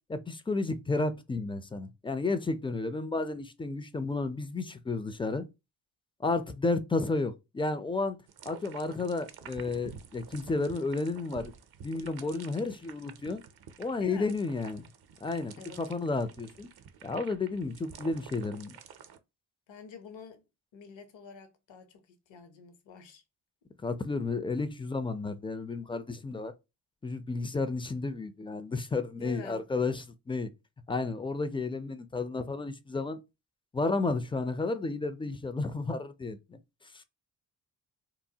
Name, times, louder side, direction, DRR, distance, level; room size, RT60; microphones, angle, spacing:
voice 1, 0.1-5.4 6.2-8.2 8.4-11.5 11.8-13.4 13.8-14.8 15.2-16.7 17.0-18.8 23.8-26.5 27.0-30.5 30.9-33.2 33.7-36.6, left 3 dB, 10° left, 0.3 m, -32 dB
sound 1, 8.3-19.2, right 7 dB, 55° right, 0.5 m, -50 dB
voice 2, 14.0-14.4 15.6-15.9 19.7-20.4 20.7-23.2 29.1-29.7, left 6 dB, 70° left, 0.8 m, -47 dB
3.0 x 2.1 x 2.7 m
supercardioid pair, 45°, 48 cm